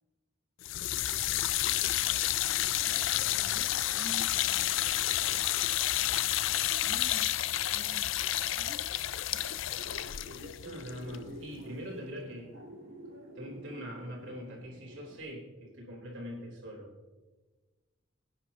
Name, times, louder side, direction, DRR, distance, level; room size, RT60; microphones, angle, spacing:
sound 1, 0.6-11.7, left 14 dB, 70° left, 0.4 m, -30 dB
voice 1, 2.4-5.0 6.4-9.7, right 1 dB, 35° right, 0 dB, 1.1 m, -51 dB
sound 2, 9.7-15.2, equal, 85° right, 2.8 m, -48 dB
voice 2, 10.6-12.5 13.3-16.9, equal, 65° right, -2 dB, 4.1 m, -43 dB
24.0 x 10.0 x 2.9 m, 1.3 s
head